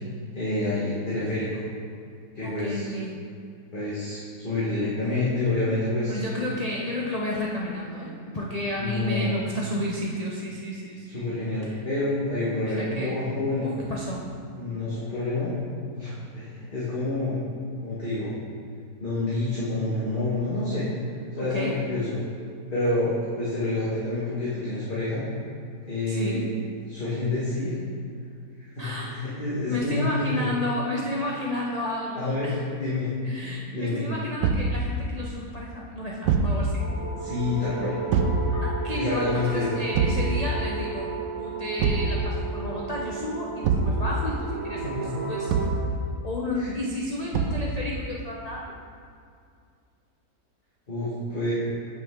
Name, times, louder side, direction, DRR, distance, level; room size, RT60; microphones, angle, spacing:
voice 1, 0.3-1.5 2.3-2.9 3.7-6.2 8.8-9.3 11.1-13.7 14.5-15.5 15.9-17.4 17.8-18.3 19.0-20.9 21.3-22.2 22.7-25.2 25.9-26.5 26.8-27.7 28.7-30.5 32.1-32.5 32.8-33.1 33.4-34.0 37.2-37.9 38.9-39.8 44.8-45.1 46.5-46.7 50.9-51.5, left 2 dB, 30° left, -10 dB, 1.5 m, -28 dB
voice 2, 2.4-3.2 6.1-11.3 11.6-11.8 12.6-13.1 13.6-14.3 21.4-21.8 26.1-26.5 28.8-29.1 29.7-32.6 33.2-36.8 38.5-41.1 41.4-45.5 46.2-48.7, left 1 dB, 75° left, -4 dB, 0.3 m, -32 dB
Thump thud, 34.4-34.8 36.2-36.6 38.1-38.4 39.9-40.3 41.8-42.1 43.6-44.0 45.5-45.8 47.3-47.7, right 5 dB, 85° right, 1.2 m, -23 dB
sound 1, 36.8-45.7, right 5 dB, 65° right, 2.3 m, -34 dB
8.8 x 5.6 x 3.7 m, 2.3 s
omnidirectional pair, 1.8 m